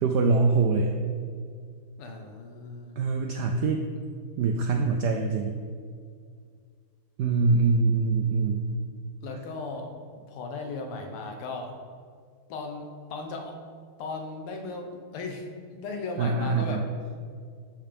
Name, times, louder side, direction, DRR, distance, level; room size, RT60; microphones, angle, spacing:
voice 1, 0.0-1.0 3.0-3.8 4.4-5.6 7.2-8.7 16.2-16.9, right 4 dB, 80° right, 3 dB, 0.9 m, -24 dB
voice 2, 2.0-3.0 9.2-10.0 10.3-11.8 12.5-13.5 14.0-15.5 15.7-16.9, left 3 dB, 85° left, 3 dB, 1.9 m, -36 dB
12.0 x 5.6 x 3.5 m, 2.1 s
omnidirectional pair, 2.4 m